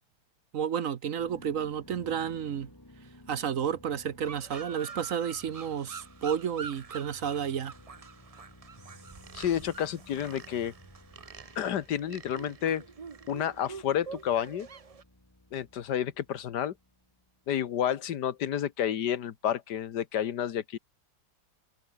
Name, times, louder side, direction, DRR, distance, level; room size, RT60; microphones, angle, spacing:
voice 1, 0.5-2.7 3.3-7.7, right 8 dB, 55° right, 1.3 m, -31 dB
sound 1, 1.2-17.7, left 1 dB, 10° left, 2.9 m, -56 dB
sound 2, 4.2-15.0, right 5 dB, 40° right, 0.5 m, -46 dB
voice 2, 9.3-10.7 11.6-12.9 13.3-14.7 15.5-16.7 17.5-20.8, left 10 dB, 90° left, 1.7 m, -30 dB
omnidirectional pair, 1.7 m